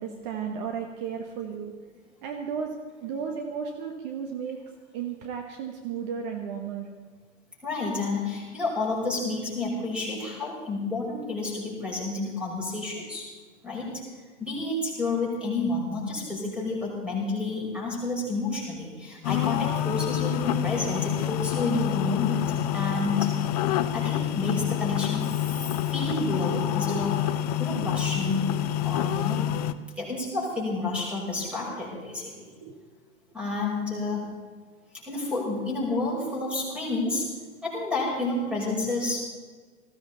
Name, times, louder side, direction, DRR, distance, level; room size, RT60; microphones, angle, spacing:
voice 1, 0.0-1.7 2.2-4.6 4.9-6.9 32.6-32.8, right 7 dB, 35° right, 3 dB, 1.5 m, -34 dB
voice 2, 7.6-13.3 13.6-14.0 14.4-23.4 23.9-27.2 27.6-28.5 28.8-29.5 30.0-32.3 33.3-34.3 35.1-37.3 37.6-39.3, left 3 dB, 5° right, -3 dB, 5.6 m, -30 dB
sound 1, 19.2-29.7, left 11 dB, 35° left, 0.6 m, -27 dB
19.5 x 15.0 x 4.1 m, 1.5 s
figure-of-eight pair, 105°, 37 cm